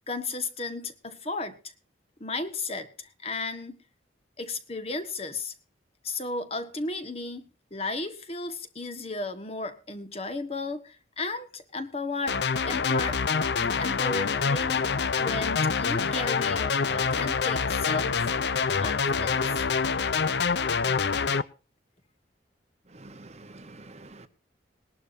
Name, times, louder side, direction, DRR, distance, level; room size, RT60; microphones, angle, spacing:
voice 1, 0.1-1.7 2.2-3.8 4.4-5.5 6.0-13.2 13.8-14.8 15.2-18.3 18.8-19.6, left 3 dB, 30° left, 1.4 m, -34 dB
sound 1, 12.3-21.4, left 5 dB, 60° left, 0.6 m, -26 dB
voice 2, 22.9-24.3, right 2 dB, 35° right, 0.9 m, -47 dB
21.0 x 11.5 x 2.7 m
head